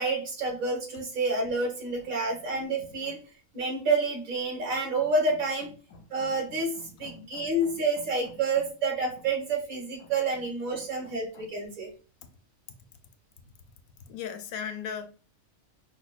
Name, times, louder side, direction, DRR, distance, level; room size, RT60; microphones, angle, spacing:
voice 1, 0.0-3.2 3.5-5.7 6.1-6.7 7.0-11.9, right 3 dB, 80° right, 1.7 m, -29 dB
voice 2, 5.9-6.3 6.7-8.0 10.0-10.1 10.7-11.4 12.2-12.3 12.7-12.8 14.0-15.1, left 7 dB, 85° left, 1.0 m, -41 dB
5.1 x 2.1 x 2.3 m
omnidirectional pair, 1.5 m